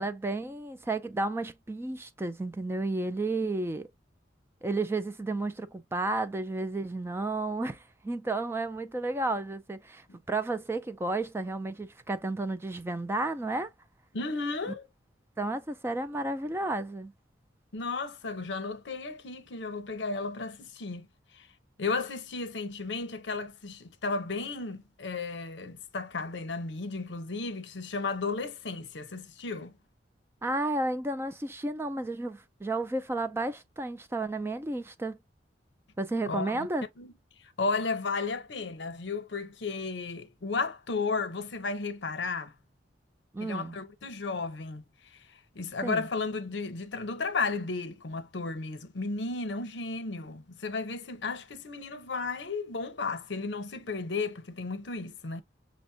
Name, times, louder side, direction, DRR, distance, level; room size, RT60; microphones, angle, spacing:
voice 1, 0.0-3.9 4.6-13.7 15.4-17.1 30.4-35.2 36.0-36.9 43.3-43.8 45.8-46.1, right 2 dB, 15° right, 0.3 m, -32 dB
voice 2, 14.1-14.9 17.7-21.1 21.3-21.5 21.8-29.7 36.3-36.7 37.0-37.1 37.6-42.5 43.4-44.8 45.5-55.4, left 4 dB, 75° left, 0.7 m, -34 dB
6.0 x 2.1 x 2.6 m
head